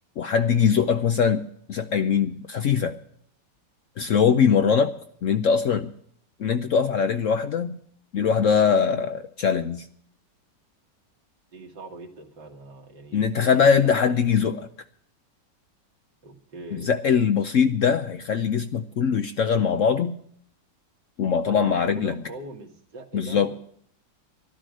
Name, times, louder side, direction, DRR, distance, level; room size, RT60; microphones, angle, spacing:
voice 1, 0.2-3.0 4.0-4.9 5.2-5.9 6.4-7.8 8.1-9.9 13.1-14.6 16.7-20.2 21.2-22.2 23.1-23.5, left 6 dB, 60° left, 9 dB, 0.8 m, -22 dB
voice 2, 11.5-14.3 16.2-17.0 21.4-23.6, right 2 dB, 75° right, 3 dB, 2.5 m, -42 dB
12.5 x 12.5 x 6.3 m, 0.65 s
omnidirectional pair, 1.9 m